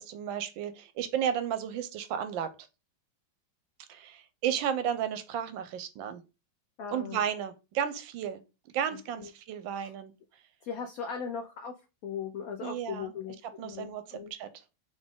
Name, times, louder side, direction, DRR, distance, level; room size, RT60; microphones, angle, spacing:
voice 1, 0.0-2.5 3.9-6.2 6.9-8.4 8.7-10.1 12.6-13.1 13.6-14.5, right 9 dB, 80° right, 1.3 m, -33 dB
voice 2, 6.8-7.2 9.2-9.3 9.8-9.9 10.6-11.7 12.0-14.3, left 6 dB, 90° left, 0.7 m, -38 dB
3.9 x 3.5 x 3.6 m
omnidirectional pair, 2.1 m